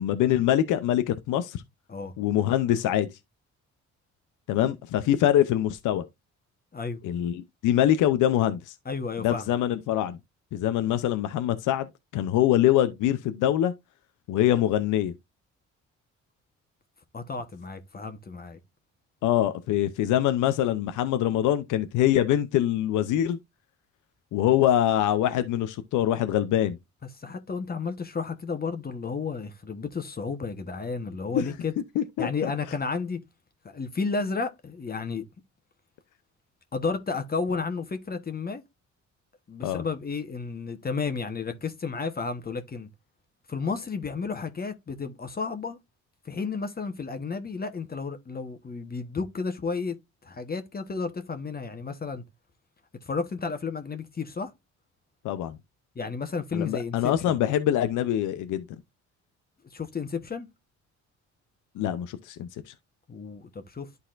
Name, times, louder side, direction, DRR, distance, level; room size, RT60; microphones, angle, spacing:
voice 1, 0.0-1.6 2.2-3.1 4.5-6.0 7.0-8.7 9.2-10.2 10.5-11.9 12.1-13.7 14.3-15.1 19.2-23.4 24.3-26.8 31.3-31.4 32.0-32.5 39.6-39.8 55.2-55.6 56.5-58.6 61.8-62.5, left 12 dB, 85° left, 0.7 m, -24 dB
voice 2, 8.8-9.5 17.1-18.6 27.2-31.7 32.2-33.2 33.7-35.2 36.7-38.6 39.5-42.9 43.5-45.8 46.2-50.0 50.2-52.2 53.0-54.5 55.9-57.4 59.7-60.5 63.1-63.9, left 4 dB, 30° left, 1.2 m, -32 dB
11.5 x 4.1 x 2.5 m
cardioid pair, 90°, 30 cm